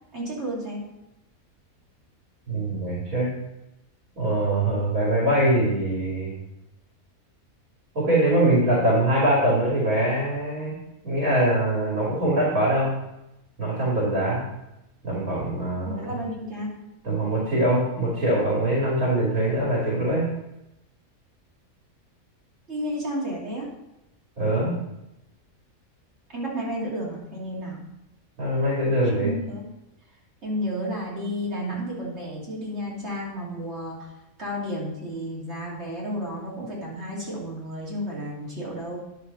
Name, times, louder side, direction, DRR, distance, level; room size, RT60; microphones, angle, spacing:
voice 1, 0.1-0.9 15.8-16.9 22.7-23.7 26.3-27.9 29.2-29.7 30.4-34.1 34.4-39.0, equal, 50° right, -5 dB, 3.1 m, -32 dB
voice 2, 2.5-3.3 4.2-6.3 7.9-10.7 11.0-12.9 13.6-14.4 15.0-16.1 17.0-20.2 24.4-24.7 28.4-29.3, right 1 dB, 70° right, -6 dB, 3.1 m, -23 dB
10.5 x 6.5 x 4.1 m, 0.91 s
omnidirectional pair, 1.5 m